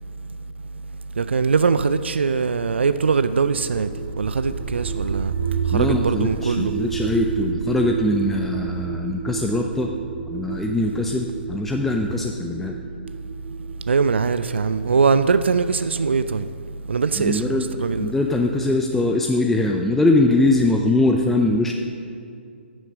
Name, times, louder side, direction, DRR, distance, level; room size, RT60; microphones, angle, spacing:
voice 1, 1.2-3.9 4.2-5.3 5.7-6.7 13.9-16.5 16.9-18.1, right 5 dB, 75° right, 0.4 m, -21 dB
sound 1, 3.5-15.3, right 8 dB, 40° right, 1.2 m, -30 dB
voice 2, 5.7-9.9 10.3-12.8 17.2-17.6 18.0-21.7, left 2 dB, 5° left, 0.4 m, -22 dB
10.0 x 6.4 x 6.4 m
figure-of-eight pair, 130°, 6 cm